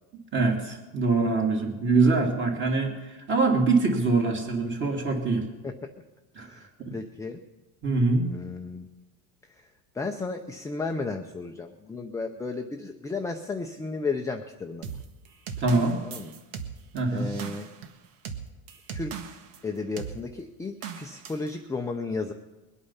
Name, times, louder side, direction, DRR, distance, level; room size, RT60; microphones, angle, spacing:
voice 1, 0.3-5.5 6.4-6.9 7.8-8.3 15.6-16.0 16.9-17.3, right 3 dB, 25° right, 1 dB, 2.7 m, -24 dB
voice 2, 6.9-7.4 8.3-8.9 9.5-9.7 9.9-15.0 16.0-16.3 17.1-17.7 18.9-19.2 19.6-22.3, left 3 dB, 5° left, 3 dB, 0.6 m, -33 dB
sound 1, 14.8-19.6 20.0-20.2 20.8-21.5, right 7 dB, 85° right, 1.6 m, -38 dB
22.0 x 8.6 x 5.6 m, 1.1 s
cardioid pair, 140°, 43 cm